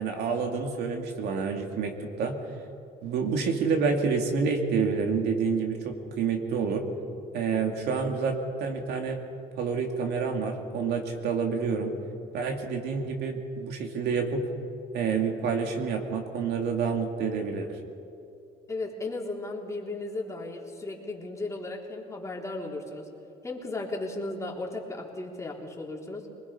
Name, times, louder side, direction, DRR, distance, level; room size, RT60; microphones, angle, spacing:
voice 1, 0.0-2.4 3.0-6.8 7.3-9.2 9.6-11.9 12.3-14.4 14.9-17.8, right 5 dB, 75° right, 3 dB, 2.6 m, -28 dB
voice 2, 18.7-23.1 23.4-26.3, left 2 dB, 15° left, -2 dB, 3.5 m, -35 dB
25.5 x 20.0 x 5.6 m, 2.7 s
cardioid pair, 110°, 17 cm